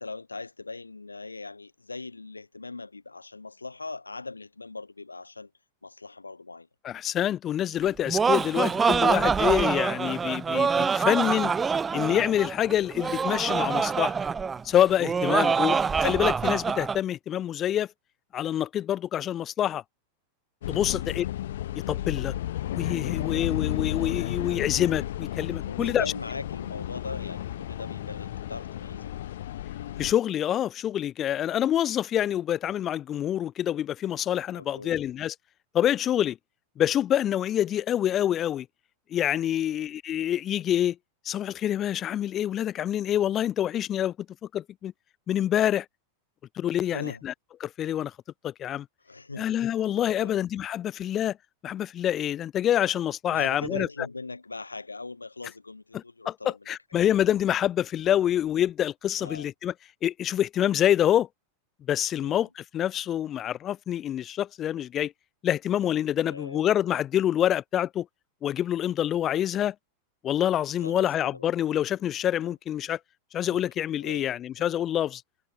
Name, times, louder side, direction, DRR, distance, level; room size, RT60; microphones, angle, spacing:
voice 1, 0.0-5.5 5.8-6.7 8.6-8.8 15.3-15.6 20.9-21.1 25.7-29.1 34.5-35.0 39.6-39.9 46.9-47.2 49.0-49.5 50.2-50.4 53.3-56.6 59.2-59.5 62.2-62.5 66.2-66.6 70.8-71.5 72.4-72.5 73.4-73.6 74.0-74.3 74.6-74.8, left 3 dB, 80° left, 4.0 m, -40 dB
voice 2, 6.8-11.5 11.9-14.1 14.6-17.9 18.3-19.8 20.7-21.3 21.7-22.3 22.7-26.0 30.0-35.3 35.7-36.4 36.8-38.7 39.1-41.0 41.2-44.1 44.5-44.9 45.3-45.8 46.6-47.3 47.6-48.1 48.4-48.9 49.4-51.4 51.6-53.9 55.9-59.7 60.0-61.3 61.9-65.1 65.4-68.1 68.4-69.7 70.2-73.0 73.3-75.2, left 11 dB, 30° left, 1.1 m, -26 dB
Laughter, 7.8-17.0, right 5 dB, 15° right, 0.5 m, -25 dB
sound 1, 20.6-30.1, left 13 dB, 60° left, 1.4 m, -33 dB
figure-of-eight pair, 90°, 0 cm